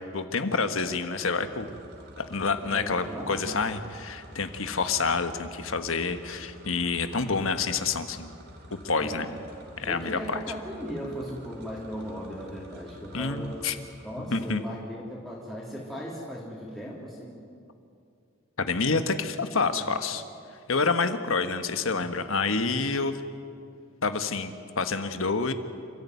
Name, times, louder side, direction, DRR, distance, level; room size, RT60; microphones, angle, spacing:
voice 1, 0.0-1.7 2.2-8.3 8.7-9.3 9.8-10.4 13.1-13.8 14.3-14.6 18.6-20.2 20.7-23.2 24.0-25.5, left 4 dB, 75° left, 9 dB, 1.3 m, -28 dB
sound 1, 1.2-14.5, equal, 50° right, 2.8 m, -49 dB
voice 2, 2.6-3.5 9.0-9.3 9.8-13.6 14.0-17.4 19.7-19.9, equal, ahead, -6 dB, 3.2 m, -37 dB
28.5 x 14.0 x 9.4 m, 2.4 s
head